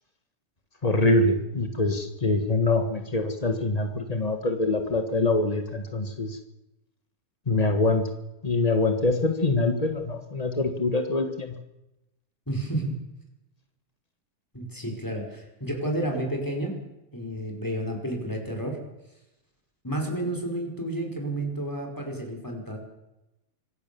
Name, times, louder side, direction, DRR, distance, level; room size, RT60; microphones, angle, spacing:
voice 1, 0.8-6.4 7.5-8.0 8.4-11.5, left 2 dB, 45° left, 6 dB, 0.4 m, -24 dB
voice 2, 12.5-12.9 14.5-16.7 17.1-18.8 19.8-22.8, right 1 dB, 5° left, 2 dB, 4.7 m, -31 dB
25.5 x 16.5 x 7.0 m, 0.92 s
omnidirectional pair, 3.6 m